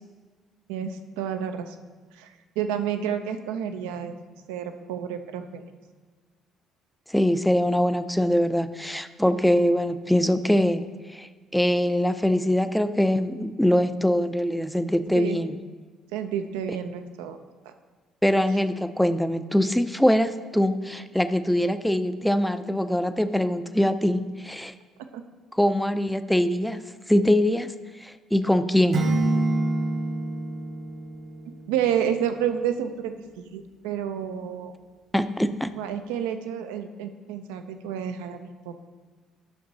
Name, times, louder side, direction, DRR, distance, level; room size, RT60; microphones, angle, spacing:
voice 1, 0.7-1.8 2.2-4.1 4.5-5.6 15.1-15.4 16.1-17.4 25.1-25.2 31.7-34.7 35.8-38.9, right 8 dB, 80° right, 8 dB, 0.5 m, -30 dB
voice 2, 7.1-10.9 11.1-15.6 18.2-24.7 25.5-26.8 27.1-27.7 28.0-29.0 35.1-35.7, left 1 dB, 5° left, 11 dB, 0.4 m, -23 dB
Acoustic guitar / Strum, 28.9-32.0, right 2 dB, 55° right, 1.1 m, -27 dB
10.5 x 5.9 x 2.8 m, 1.4 s
hypercardioid pair, 55°, 0 cm